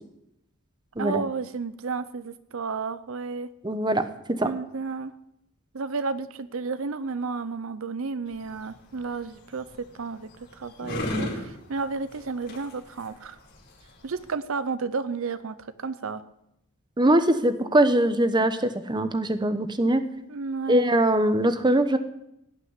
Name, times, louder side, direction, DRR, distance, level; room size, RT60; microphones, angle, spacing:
voice 1, 1.0-3.5 4.3-5.1 5.7-13.4 14.0-16.2 20.3-20.9, right 4 dB, 65° right, 13 dB, 0.6 m, -32 dB
voice 2, 3.6-4.1 4.4-4.5 17.0-20.0 20.7-22.0, right 1 dB, 20° right, 10 dB, 0.9 m, -22 dB
sound 1, 8.3-14.3, left 1 dB, 50° left, 4.9 m, -37 dB
17.5 x 6.0 x 9.7 m, 0.81 s
head